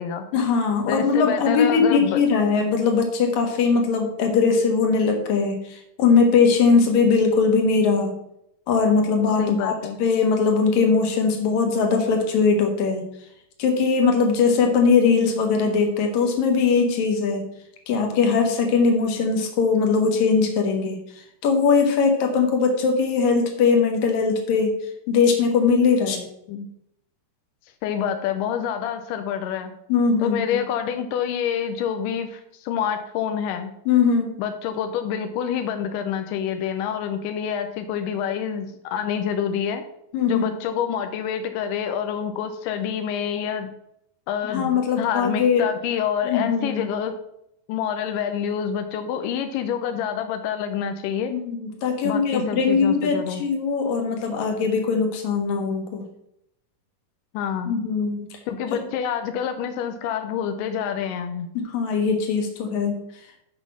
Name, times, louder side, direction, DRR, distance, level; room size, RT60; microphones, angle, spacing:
voice 1, 0.3-8.1 8.7-13.1 13.6-17.5 17.9-21.0 21.4-24.8 25.1-26.2 29.9-30.6 33.9-34.4 40.1-40.5 44.5-45.6 46.2-46.9 51.3-56.0 57.7-58.3 61.5-63.0, left 5 dB, 60° left, 3 dB, 2.4 m, -20 dB
voice 2, 0.9-2.2 9.4-10.0 26.5-26.7 27.8-29.7 30.2-33.7 34.4-39.8 40.3-43.7 44.3-47.1 47.7-51.3 52.0-53.4 57.3-57.7 58.5-61.5, left 8 dB, 85° left, 7 dB, 1.9 m, -27 dB
8.2 x 5.5 x 6.2 m, 0.78 s
omnidirectional pair, 4.6 m